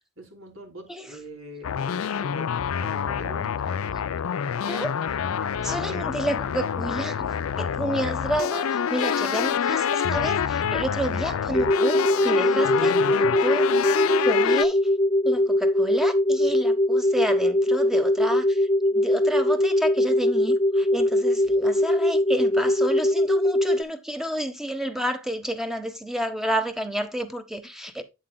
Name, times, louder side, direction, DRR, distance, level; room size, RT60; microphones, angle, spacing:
voice 1, 0.2-2.5 2.8-3.5 4.6-4.9 5.2-5.3 5.7-6.1 10.6-11.0 11.6-11.7, right 1 dB, 70° right, 3.4 m, -43 dB
sound 1, 1.6-14.7, left 7 dB, 80° left, 0.4 m, -27 dB
voice 2, 5.5-7.3 7.6-12.0 12.2-13.8 14.2-14.8 15.2-28.0, right 1 dB, ahead, 1.1 m, -30 dB
sound 2, 11.5-23.8, left 1 dB, 30° left, 0.6 m, -21 dB
9.0 x 7.5 x 2.3 m
head